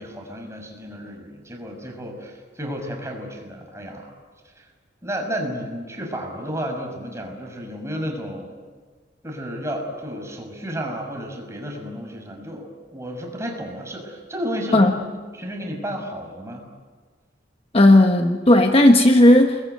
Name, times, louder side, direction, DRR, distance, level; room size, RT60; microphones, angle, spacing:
voice 1, 0.0-4.1 4.6-4.7 5.0-8.5 9.2-16.6, equal, 15° right, 2 dB, 5.9 m, -32 dB
voice 2, 17.7-19.6, left 1 dB, 30° left, 5 dB, 1.2 m, -14 dB
29.5 x 21.5 x 9.2 m, 1.5 s
head